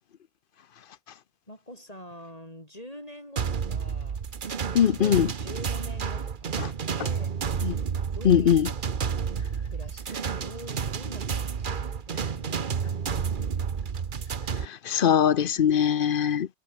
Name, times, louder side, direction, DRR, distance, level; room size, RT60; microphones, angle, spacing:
voice 1, 1.5-4.2 4.7-6.5 7.0-7.4 8.1-8.8 9.7-13.5, left 1 dB, 35° left, 7.2 m, -45 dB
sound 1, 3.4-14.7, right 6 dB, 50° right, 1.1 m, -30 dB
voice 2, 4.7-5.3 7.6-7.7 8.2-8.7 14.9-16.5, left 9 dB, 55° left, 0.8 m, -21 dB
omnidirectional pair, 1.1 m